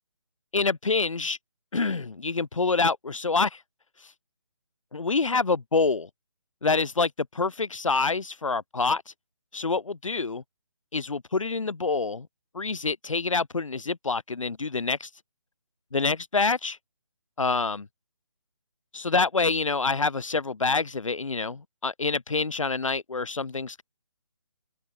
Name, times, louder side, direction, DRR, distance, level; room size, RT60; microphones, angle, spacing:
voice 1, 0.5-1.4 1.7-3.6 4.0-4.1 4.9-6.1 6.6-9.1 9.5-10.4 10.9-12.3 12.5-15.1 15.9-16.8 17.4-17.8 18.9-23.8, left 4 dB, 80° left, 2.5 m, -26 dB
open air
hypercardioid pair, 165°, 16 cm